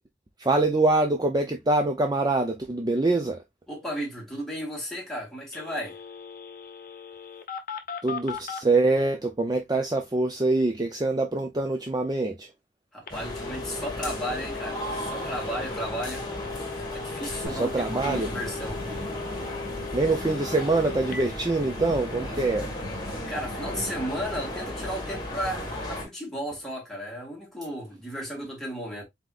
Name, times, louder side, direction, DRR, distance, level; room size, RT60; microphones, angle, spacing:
voice 1, 0.4-3.4 8.0-12.5 17.5-18.3 19.9-22.7, right 2 dB, 20° right, 0.5 m, -24 dB
voice 2, 3.7-6.0 12.9-16.3 16.9-18.8 23.3-29.0, equal, ahead, 1.9 m, -34 dB
Telephone, 5.5-8.6 13.1-21.2, left 6 dB, 50° left, 0.7 m, -39 dB
sound 1, 13.1-26.1, left 1 dB, 25° left, 1.8 m, -35 dB
sound 2, 17.4-24.4, equal, 55° right, 1.6 m, -41 dB
4.2 x 3.9 x 2.4 m
head